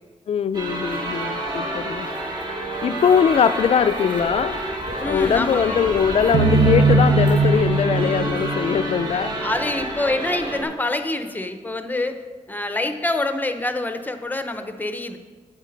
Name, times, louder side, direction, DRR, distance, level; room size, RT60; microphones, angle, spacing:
voice 1, 0.3-2.1 2.8-4.6 5.1-9.4, left 7 dB, 55° left, 13 dB, 0.4 m, -21 dB
sound 1, 0.5-10.6, right 1 dB, 35° right, 1.8 m, -28 dB
voice 2, 5.0-5.8 9.4-12.2 12.5-15.2, left 2 dB, 15° left, 8 dB, 0.7 m, -26 dB
sound 2, 6.3-9.5, right 2 dB, 75° right, 0.7 m, -19 dB
8.4 x 8.1 x 5.2 m, 1.5 s
wide cardioid pair, 145°, 13 cm